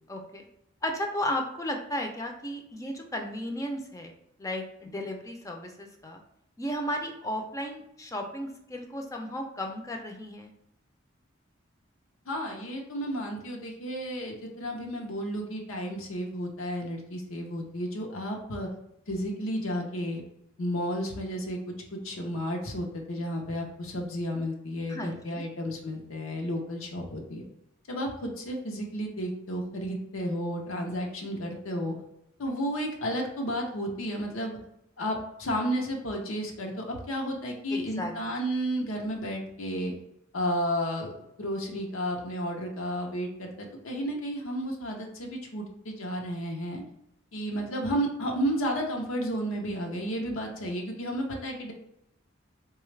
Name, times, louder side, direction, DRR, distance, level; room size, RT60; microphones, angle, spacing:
voice 1, 0.1-0.4 0.8-6.2 6.6-10.5 24.9-25.5 37.7-38.1, left 1 dB, 15° left, 3 dB, 0.4 m, -34 dB
voice 2, 12.3-18.7 19.1-20.2 20.6-21.6 21.9-27.4 27.9-31.9 32.4-34.6 35.0-39.9 40.3-41.1 41.4-46.8 47.3-51.7, equal, 90° left, 1 dB, 0.7 m, -32 dB
4.0 x 2.3 x 3.1 m, 0.79 s
head